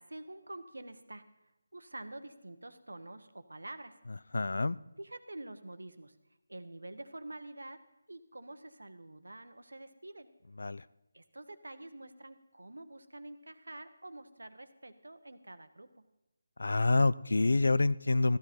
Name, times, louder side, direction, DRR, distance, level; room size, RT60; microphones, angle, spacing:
voice 1, 0.0-3.9 5.0-6.2 6.5-7.8 8.1-10.3 11.1-16.0, right 2 dB, 80° right, 11 dB, 1.1 m, -47 dB
voice 2, 4.3-4.8 10.6-10.8 16.6-18.4, left 2 dB, 70° left, 19 dB, 0.4 m, -27 dB
14.5 x 12.5 x 4.4 m, 0.95 s
figure-of-eight pair, 160°, 0 cm